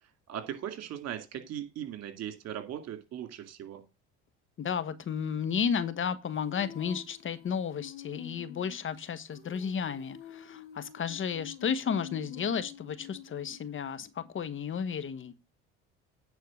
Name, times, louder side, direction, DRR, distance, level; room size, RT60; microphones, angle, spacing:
voice 1, 0.3-3.8, right 10 dB, 55° right, 2.4 m, -39 dB
voice 2, 4.6-15.3, left 7 dB, 40° left, 1.1 m, -33 dB
Female singing, 6.3-14.0, left 9 dB, 90° left, 2.3 m, -48 dB
9.6 x 4.4 x 6.3 m
supercardioid pair, 75°, 31 cm